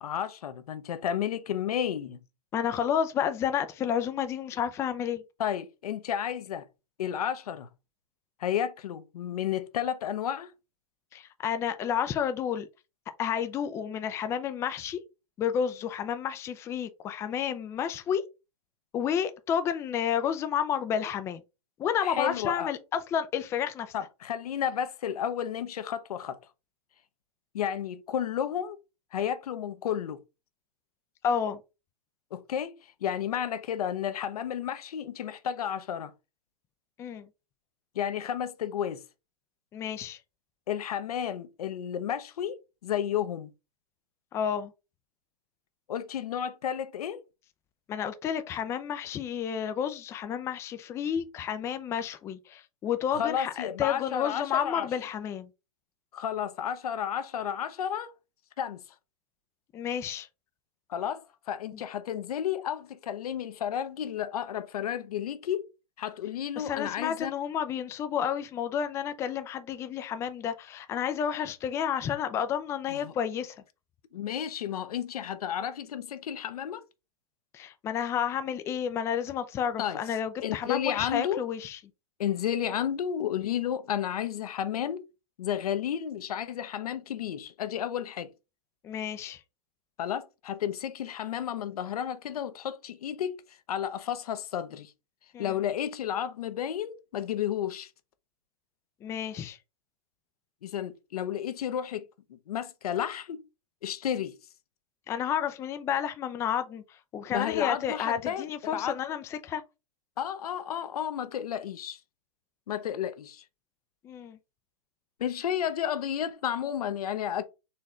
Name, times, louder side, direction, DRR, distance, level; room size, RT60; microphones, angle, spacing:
voice 1, 0.0-2.2 5.4-6.7 7.0-7.7 8.4-10.5 22.0-22.7 23.9-26.4 27.5-28.8 29.1-30.2 32.3-32.7 33.0-36.1 37.9-39.0 40.7-43.5 45.9-47.2 53.1-54.9 56.1-58.1 58.6-58.8 60.9-65.7 66.0-67.3 72.9-73.1 74.1-76.8 79.8-80.0 80.4-81.4 82.2-85.0 85.4-88.3 90.0-94.9 95.4-97.9 100.6-102.0 102.3-103.4 103.8-104.3 107.3-109.0 110.2-112.0 112.7-113.4 115.2-117.4, left 9 dB, 80° left, 0.8 m, -32 dB
voice 2, 2.5-5.2 11.1-12.7 13.2-15.0 15.4-18.2 18.9-21.4 21.8-23.9 31.2-31.6 37.0-37.3 39.7-40.2 44.3-44.7 47.9-55.5 59.7-60.3 66.6-73.5 77.5-81.8 88.8-89.4 95.3-95.5 99.0-99.6 105.1-106.8 107.1-109.6 114.0-114.4, left 8 dB, 15° left, 0.4 m, -31 dB
4.4 x 3.2 x 3.6 m
hypercardioid pair, 140°, 19 cm